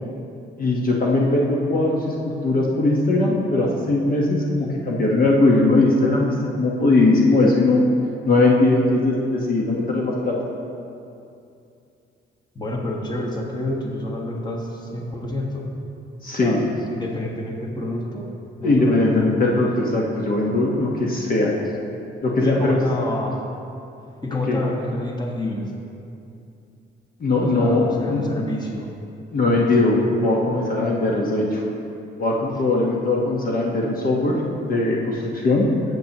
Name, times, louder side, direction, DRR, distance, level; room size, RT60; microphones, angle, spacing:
voice 1, 0.6-7.9 8.2-10.3 16.2-16.6 18.6-21.5 22.2-22.8 24.3-24.6 27.2-28.5 29.3-31.6 32.2-34.4 34.6-35.7, left 2 dB, 45° left, -3 dB, 1.2 m, -20 dB
voice 2, 12.5-15.7 16.4-18.3 18.6-19.5 22.4-23.4 24.2-25.7 27.4-28.9 29.4-29.9, left 1 dB, 20° left, -1 dB, 1.4 m, -28 dB
11.5 x 8.0 x 2.9 m, 2.6 s
cardioid pair, 90°, 20 cm